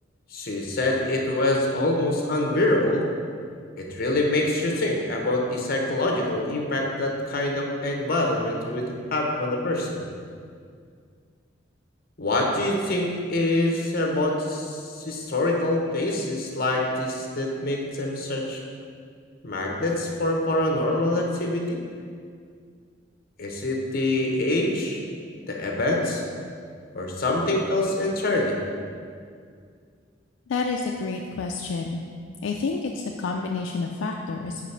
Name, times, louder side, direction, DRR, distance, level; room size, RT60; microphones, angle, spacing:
voice 1, 0.3-3.1 3.8-10.0 12.2-18.6 19.4-21.8 23.4-25.0 25.3-26.2 26.9-28.6, left 1 dB, 50° left, 0 dB, 1.0 m, -25 dB
voice 2, 30.5-32.0 32.4-34.6, left 4 dB, 75° left, 1 dB, 0.4 m, -29 dB
5.0 x 4.9 x 5.6 m, 2.2 s
head